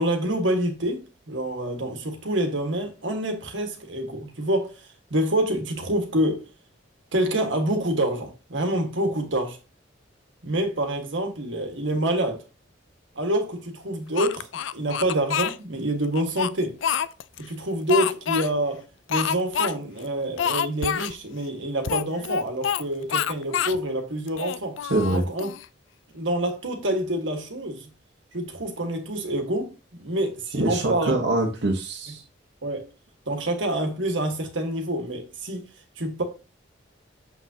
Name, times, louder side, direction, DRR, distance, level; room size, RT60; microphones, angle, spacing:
voice 1, 0.0-6.5 7.1-9.6 10.4-12.4 13.2-14.5 14.7-16.8 17.4-24.8 25.1-25.5 26.1-27.9 28.3-29.7 30.0-31.1 32.6-32.9 33.3-35.7 36.0-36.2, right 1 dB, 80° right, 1.7 m, -27 dB
Speech, 14.2-15.6 16.1-17.4 17.9-18.5 19.1-19.7 20.0-20.1 20.4-21.1 21.8-22.8 23.1-23.8 24.3-25.7, left 8 dB, 85° left, 0.4 m, -27 dB
voice 2, 24.9-25.2 30.5-32.2, right 2 dB, 60° right, 1.2 m, -24 dB
7.0 x 6.2 x 2.8 m
head